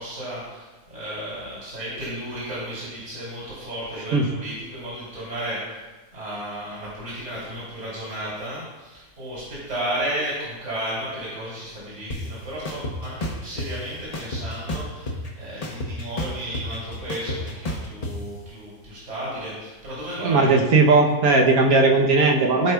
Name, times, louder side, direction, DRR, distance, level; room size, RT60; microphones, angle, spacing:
voice 1, 0.0-5.8 6.1-20.6, right 1 dB, 55° right, -8 dB, 3.0 m, -33 dB
sound 1, 12.1-12.2 12.6-13.7 14.1-15.3 15.6-18.1, left 1 dB, 30° left, 0.8 m, -30 dB
voice 2, 20.2-22.7, right 3 dB, 75° right, 1 dB, 1.3 m, -17 dB
14.0 x 4.9 x 2.3 m, 1.2 s
omnidirectional pair, 1.6 m